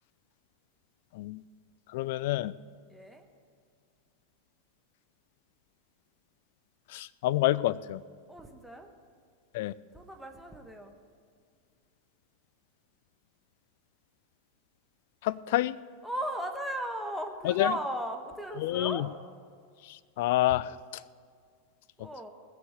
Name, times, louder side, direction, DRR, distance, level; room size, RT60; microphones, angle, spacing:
voice 1, 1.9-2.5 6.9-8.0 9.5-9.7 15.2-15.8 17.4-17.7 18.6-19.1 19.8-21.0 22.0-22.1, left 15 dB, 50° left, 18 dB, 0.3 m, -28 dB
voice 2, 2.9-3.3 8.3-8.9 9.9-10.9 16.0-19.0 22.0-22.3, equal, ahead, 2 dB, 1.4 m, -36 dB
18.0 x 6.8 x 6.7 m, 2.1 s
figure-of-eight pair, 90°, 0 cm